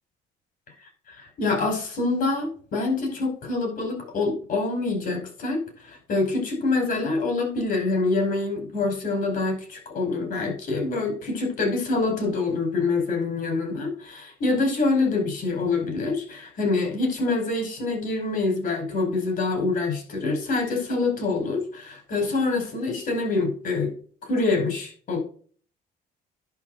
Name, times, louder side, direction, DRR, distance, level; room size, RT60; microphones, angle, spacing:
voice 1, 0.8-23.9 24.2-25.2, left 3 dB, 55° left, 4 dB, 5.1 m, -26 dB
11.0 x 5.7 x 4.0 m, 0.43 s
cardioid pair, 110°, 17 cm